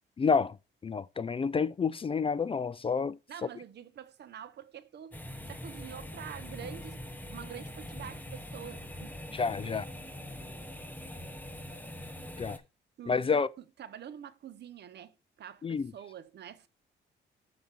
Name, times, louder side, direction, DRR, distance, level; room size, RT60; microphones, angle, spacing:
voice 1, 0.2-0.6 0.8-3.2 9.3-9.9 12.4-12.6 13.1-13.5 15.6-15.9, left 5 dB, 25° left, 0.4 m, -29 dB
voice 2, 3.3-9.2 9.6-9.8 13.0-13.4 13.8-16.7, right 9 dB, 60° right, 0.9 m, -46 dB
sound 1, 5.1-12.6, left 1 dB, 10° left, 1.3 m, -43 dB
7.0 x 5.1 x 4.5 m
cardioid pair, 90°, 20 cm